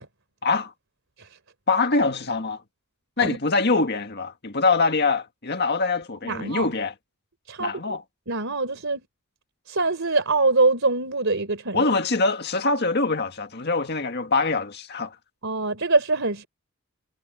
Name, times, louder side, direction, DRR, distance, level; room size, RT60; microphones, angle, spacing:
voice 1, 0.4-0.7 1.7-2.6 3.2-6.9 7.6-8.0 11.7-15.2, left 3 dB, 50° left, 1.9 m, -24 dB
voice 2, 6.2-6.7 7.5-7.7 8.3-9.1 9.7-11.8 15.4-16.5, right 3 dB, 60° right, 3.9 m, -24 dB
head